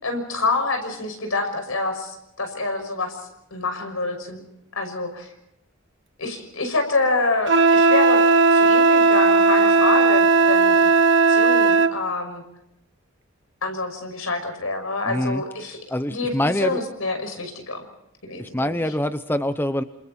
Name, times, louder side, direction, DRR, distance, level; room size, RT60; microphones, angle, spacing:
voice 1, 0.0-4.4 4.7-5.3 6.2-8.2 8.5-10.9 11.3-12.4 13.6-15.8 16.1-17.9 18.2-18.8, left 3 dB, 85° left, 6 dB, 6.0 m, -27 dB
Wind instrument woodwind instrument, 7.5-11.9, right 3 dB, 60° right, 1.4 m, -16 dB
voice 2, 15.1-15.4 15.9-16.8 18.4-19.8, left 1 dB, 10° left, 10 dB, 0.8 m, -24 dB
29.0 x 27.5 x 4.4 m, 0.81 s
head